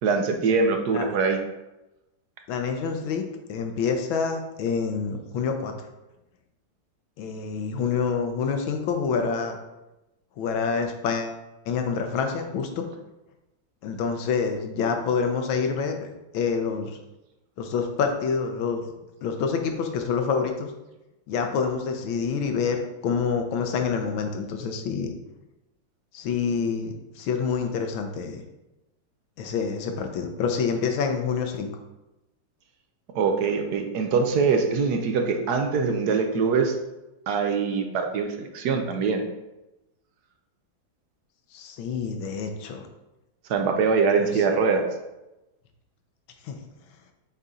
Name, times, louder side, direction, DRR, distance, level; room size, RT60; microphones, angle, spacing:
voice 1, 0.0-1.4 33.1-36.7 37.3-39.2 43.5-44.8, right 5 dB, 70° right, 4 dB, 1.1 m, -23 dB
voice 2, 2.5-3.2 3.5-5.7 7.2-9.6 10.4-11.4 11.7-12.7 13.8-17.0 17.6-18.8 19.2-20.7 21.3-25.1 26.1-28.4 29.4-31.7 41.5-42.9 44.2-44.4 46.4-46.6, left 5 dB, 85° left, 5 dB, 1.6 m, -27 dB
6.9 x 4.0 x 3.7 m, 0.98 s
omnidirectional pair, 2.1 m